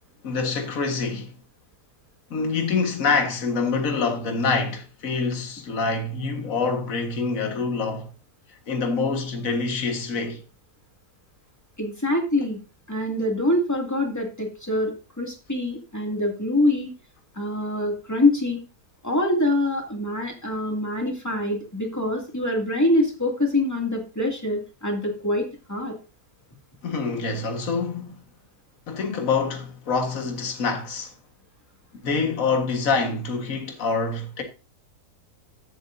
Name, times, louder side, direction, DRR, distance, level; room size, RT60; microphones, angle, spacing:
voice 1, 0.2-1.3 2.3-8.1 8.7-10.4 26.8-28.2 28.9-31.1 32.0-34.4, left 4 dB, 60° left, 1.9 m, -26 dB
voice 2, 11.8-12.6 12.9-16.9 17.3-18.6 19.0-25.9, left 1 dB, 10° left, 2.3 m, -25 dB
14.5 x 7.1 x 2.7 m
omnidirectional pair, 1.7 m